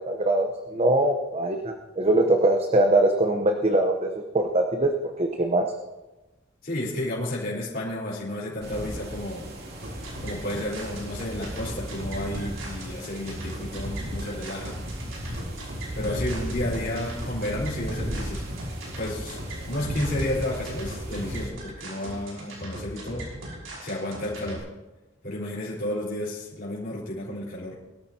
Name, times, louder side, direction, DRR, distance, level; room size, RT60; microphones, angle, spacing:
voice 1, 0.0-4.9 5.2-5.7, right 1 dB, 30° right, 3 dB, 0.9 m, -22 dB
voice 2, 6.6-9.5 10.2-14.8 15.9-18.5 18.8-19.4 19.7-23.3 23.8-24.7 25.2-27.7, left 1 dB, 50° left, -7 dB, 4.3 m, -32 dB
sound 1, 8.6-21.5, equal, 55° right, 2.7 m, -35 dB
sound 2, 9.8-24.6, right 1 dB, 90° right, 6.0 m, -39 dB
23.0 x 13.5 x 2.9 m, 1.1 s
head